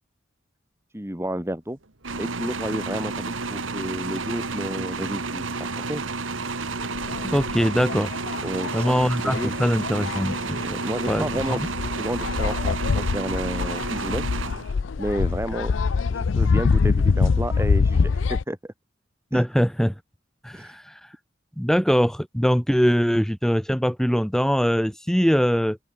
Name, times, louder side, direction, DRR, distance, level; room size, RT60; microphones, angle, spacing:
voice 1, 0.9-1.8 2.2-5.5 5.8-6.0 8.4-9.5 10.6-11.6 11.9-14.2 15.0-15.7 16.1-18.7 19.3-19.4 20.5-20.8, equal, 15° right, 3.1 m, -31 dB
sound 1, 2.0-15.0, right 3 dB, 85° right, 2.2 m, -31 dB
sound 2, 6.8-18.4, left 4 dB, 70° left, 0.5 m, -25 dB
voice 2, 7.2-8.1 8.7-10.6 11.1-11.6 19.3-19.9 20.4-21.0 21.6-25.8, equal, ahead, 2.5 m, -22 dB
head